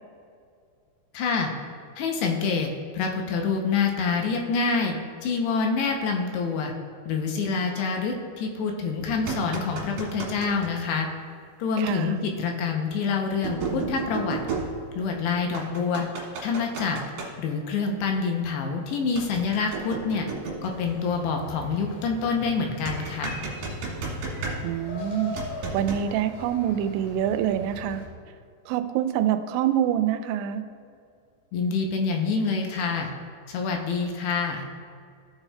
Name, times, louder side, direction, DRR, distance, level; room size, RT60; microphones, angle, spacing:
voice 1, 1.1-1.5 2.0-6.7 7.1-11.1 11.6-14.4 15.0-16.1 16.4-17.0 17.4-20.3 20.6-23.4 31.5-33.1 33.5-34.7, left 5 dB, 80° left, 2 dB, 2.7 m, -26 dB
sound 1, 9.0-10.7 12.2-12.3 13.4-15.2 15.5-17.3 19.2-20.9 22.9-24.9 25.4-26.1, right 3 dB, 60° right, 2.9 m, -33 dB
voice 2, 11.8-12.2 24.6-25.4 25.7-28.0 28.7-30.6, right 10 dB, 90° right, 9 dB, 2.9 m, -26 dB
sound 2, 20.7-28.1, left 1 dB, 65° left, 3.2 m, -41 dB
15.0 x 7.2 x 2.2 m, 2.3 s
omnidirectional pair, 5.1 m